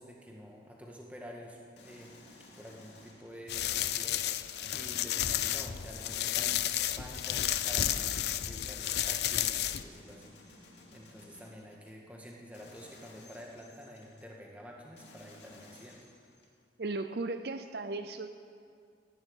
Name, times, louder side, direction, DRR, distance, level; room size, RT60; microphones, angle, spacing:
voice 1, 0.0-2.1 2.6-6.6 6.9-16.0, equal, 10° right, -1 dB, 2.0 m, -49 dB
sound 1, 1.8-3.8 4.5-6.6 7.2-9.1 9.7-11.9 12.5-14.3 15.0-16.6, left 2 dB, 85° left, 2.6 m, -56 dB
sound 2, 3.5-9.8, left 11 dB, 65° left, 0.5 m, -32 dB
voice 2, 16.8-18.3, right 3 dB, 65° right, 9 dB, 0.6 m, -36 dB
15.0 x 11.0 x 9.0 m, 2.2 s
head